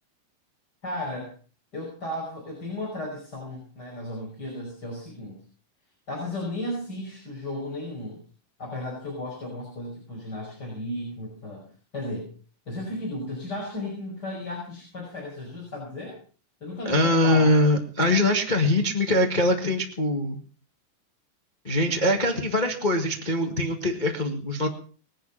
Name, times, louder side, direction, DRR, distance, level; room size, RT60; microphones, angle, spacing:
voice 1, 0.8-1.3 1.7-5.4 6.1-8.2 8.6-12.3 12.7-16.2 16.6-17.5, left 1 dB, 25° left, -3 dB, 6.1 m, -34 dB
voice 2, 16.8-20.4 21.6-24.7, left 1 dB, 60° left, 3 dB, 0.4 m, -23 dB
21.5 x 10.0 x 5.6 m, 0.41 s
omnidirectional pair, 4.1 m